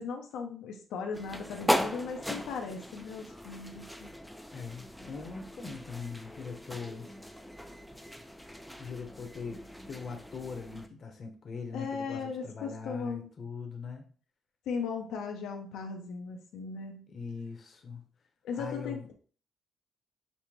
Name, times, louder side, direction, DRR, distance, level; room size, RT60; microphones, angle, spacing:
voice 1, 0.0-4.1 11.7-13.3 14.7-17.1 18.4-19.1, left 5 dB, 85° left, 2 dB, 0.6 m, -37 dB
sound 1, 1.1-10.9, equal, 5° left, 0.3 m, -38 dB
voice 2, 4.5-7.1 8.8-14.1 17.1-18.0 18.5-19.1, left 5 dB, 50° left, 4 dB, 0.7 m, -41 dB
5.3 x 2.1 x 3.0 m, 0.42 s
cardioid pair, 90°, 0 cm